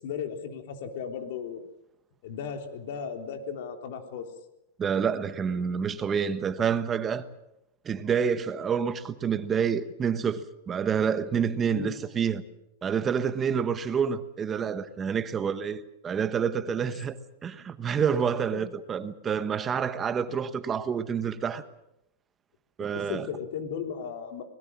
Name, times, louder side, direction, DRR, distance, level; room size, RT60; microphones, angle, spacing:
voice 1, 0.0-1.6 2.2-4.3 11.7-11.9 16.8-16.9 18.5-18.7 22.9-24.4, left 7 dB, 60° left, 3.7 m, -36 dB
voice 2, 4.8-7.3 7.8-12.4 12.8-21.6 22.8-23.3, right 7 dB, 20° right, 1.2 m, -28 dB
24.5 x 20.0 x 7.5 m
supercardioid pair, 155°, 0 cm